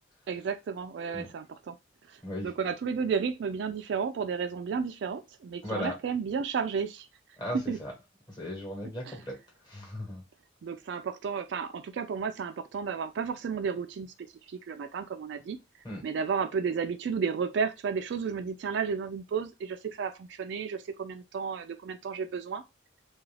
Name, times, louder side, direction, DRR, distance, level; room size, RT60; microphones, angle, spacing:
voice 1, 0.3-1.8 2.1-7.1 7.7-7.8 9.1-9.2 10.6-14.1 14.5-15.6 16.0-22.6, right 6 dB, 65° right, 0.3 m, -32 dB
voice 2, 5.6-5.9 7.4-7.9 8.3-9.4 9.6-10.2 15.8-16.0, left 1 dB, 20° left, 1.0 m, -36 dB
2.4 x 2.3 x 3.2 m
head